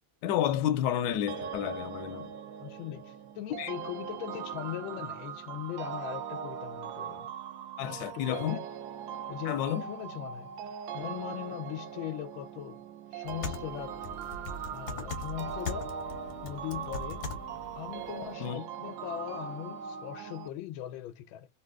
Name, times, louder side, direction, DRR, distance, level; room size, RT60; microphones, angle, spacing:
voice 1, 0.2-2.3 3.6-3.7 7.8-8.6 9.4-9.9 18.4-18.6, left 11 dB, 75° left, 1.1 m, -30 dB
sound 1, 1.3-20.5, right 8 dB, 80° right, 1.3 m, -40 dB
voice 2, 2.6-7.3 7.8-8.7 9.3-10.5 10.9-12.8 13.1-13.9 14.7-15.9 16.4-17.3 17.7-21.5, left 13 dB, 90° left, 1.4 m, -40 dB
sound 2, 13.3-18.3, left 3 dB, 50° left, 0.7 m, -41 dB
3.3 x 2.7 x 2.2 m
omnidirectional pair, 2.1 m